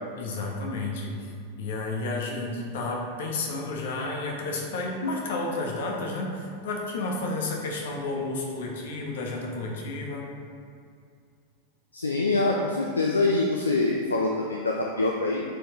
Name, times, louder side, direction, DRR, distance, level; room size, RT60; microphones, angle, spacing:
voice 1, 0.2-1.2 1.5-10.2, left 2 dB, 55° left, -1 dB, 1.3 m, -31 dB
voice 2, 11.9-15.4, left 2 dB, 75° left, 0 dB, 0.5 m, -25 dB
8.7 x 4.6 x 3.1 m, 2.3 s
figure-of-eight pair, 90°, 0 cm